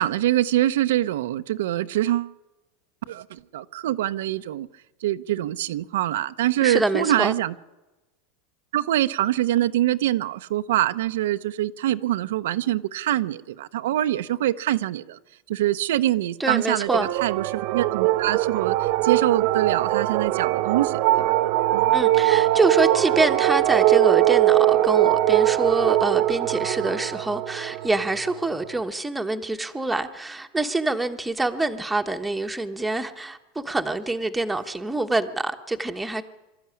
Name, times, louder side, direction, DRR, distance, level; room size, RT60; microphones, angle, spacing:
voice 1, 0.0-2.3 3.1-4.7 5.0-7.5 8.7-15.2 15.5-21.3 21.7-21.9, right 13 dB, 85° right, 0.8 m, -24 dB
voice 2, 6.6-7.3 16.4-17.1 21.9-36.2, right 2 dB, 5° right, 1.1 m, -25 dB
sound 1, 16.9-28.7, right 15 dB, 50° right, 1.1 m, -21 dB
24.5 x 13.5 x 9.8 m
supercardioid pair, 165°, 0 cm